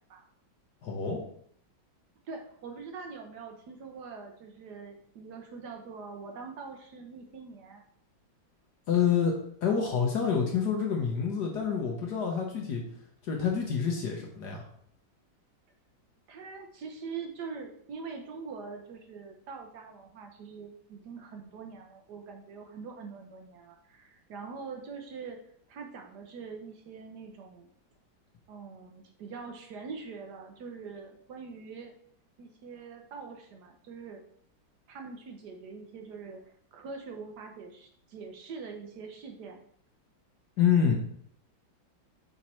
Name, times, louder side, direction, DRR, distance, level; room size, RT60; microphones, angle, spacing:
voice 1, 0.8-1.2 8.9-9.3 9.6-12.8 13.2-14.6 40.6-40.9, left 7 dB, 60° left, 0 dB, 1.4 m, -27 dB
voice 2, 2.3-7.8 16.3-25.4 25.7-27.7 28.5-31.9 32.4-34.2 34.9-39.6 40.8-40.9, right 5 dB, 65° right, 3 dB, 1.2 m, -43 dB
5.3 x 4.6 x 4.3 m, 0.64 s
omnidirectional pair, 2.1 m